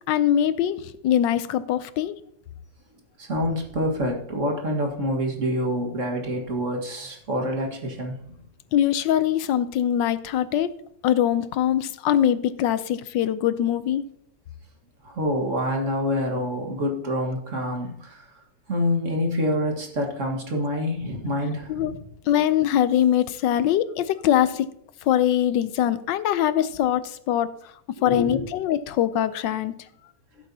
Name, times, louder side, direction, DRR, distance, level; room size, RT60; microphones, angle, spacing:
voice 1, 0.1-2.2 8.7-10.7 11.0-14.0 21.7-21.9 22.3-24.7 25.0-27.5 28.0-29.7, left 10 dB, 85° left, 14 dB, 1.3 m, -22 dB
voice 2, 3.2-8.4 15.0-18.3 18.7-22.0 28.0-28.5, left 1 dB, 45° right, 1 dB, 2.0 m, -27 dB
15.0 x 8.1 x 2.8 m, 0.70 s
omnidirectional pair, 1.9 m